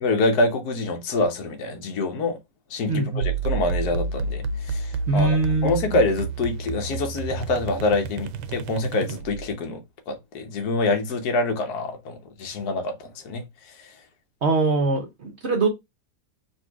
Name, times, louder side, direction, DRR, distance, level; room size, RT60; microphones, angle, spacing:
voice 1, 0.0-2.4 2.7-9.8 10.1-13.4, left 2 dB, 70° left, 1.4 m, -26 dB
voice 2, 2.9-3.3 5.1-6.0 14.4-15.7, right 3 dB, 55° right, 0.7 m, -23 dB
sound 1, 3.2-9.6, right 5 dB, 85° right, 1.2 m, -30 dB
4.0 x 2.7 x 4.5 m
omnidirectional pair, 1.8 m